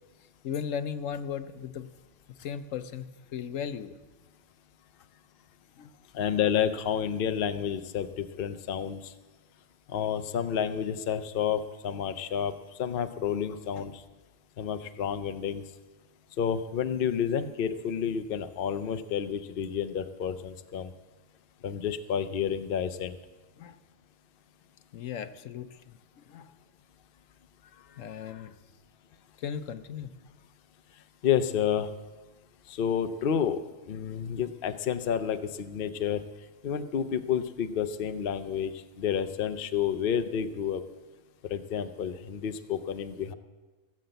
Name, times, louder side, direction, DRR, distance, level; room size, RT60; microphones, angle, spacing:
voice 1, 0.4-1.9 2.3-3.9 5.8-6.0 13.8-13.9 23.6-23.8 24.9-26.5 27.7-28.6 29.4-30.1, left 7 dB, 75° left, 12 dB, 1.1 m, -37 dB
voice 2, 6.1-9.1 9.9-12.5 12.8-14.0 14.6-15.6 16.4-20.9 21.6-23.2 31.2-31.9 32.7-33.6 33.9-36.2 36.6-40.8 41.4-43.3, left 8 dB, 50° left, 9 dB, 0.8 m, -30 dB
17.5 x 7.6 x 7.9 m, 1.3 s
omnidirectional pair, 1.4 m